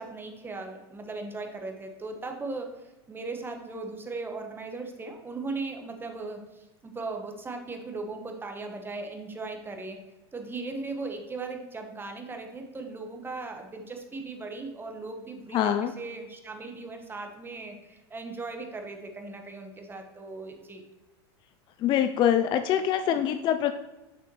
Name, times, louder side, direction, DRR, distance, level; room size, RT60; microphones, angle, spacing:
voice 1, 0.0-2.7 3.1-10.0 10.3-20.8, right 3 dB, 15° right, 4 dB, 1.0 m, -38 dB
voice 2, 15.5-15.9 21.8-23.7, left 10 dB, 35° left, 9 dB, 0.4 m, -24 dB
6.4 x 5.8 x 3.0 m, 1.0 s
hypercardioid pair, 110°, 14 cm